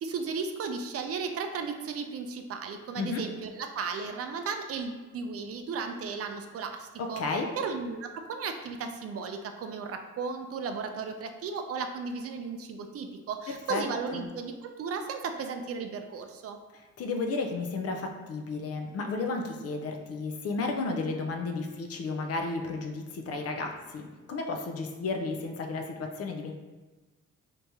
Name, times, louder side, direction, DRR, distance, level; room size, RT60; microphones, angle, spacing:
voice 1, 0.0-16.6, right 5 dB, 50° right, 6 dB, 0.4 m, -35 dB
voice 2, 7.0-7.5 13.5-13.8 14.1-14.2 17.0-26.5, left 3 dB, 55° left, 4 dB, 0.5 m, -33 dB
3.0 x 2.7 x 3.5 m, 1.2 s
cardioid pair, 90°, 30 cm